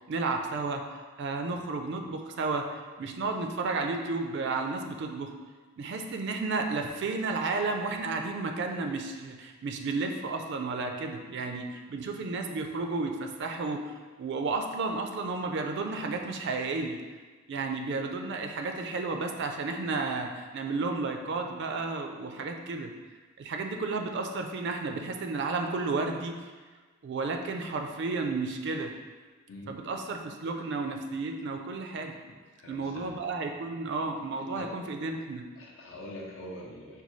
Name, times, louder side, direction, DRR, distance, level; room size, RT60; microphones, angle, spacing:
voice 1, 0.1-5.3 5.8-17.0 17.5-22.9 23.4-26.5 27.0-28.9 29.7-32.2 32.7-35.4, right 3 dB, 55° right, 4 dB, 0.3 m, -32 dB
voice 2, 29.5-29.8 32.6-33.2 34.5-34.8 35.6-37.0, left 1 dB, 70° left, -2 dB, 0.7 m, -44 dB
5.2 x 2.2 x 3.0 m, 1.4 s
head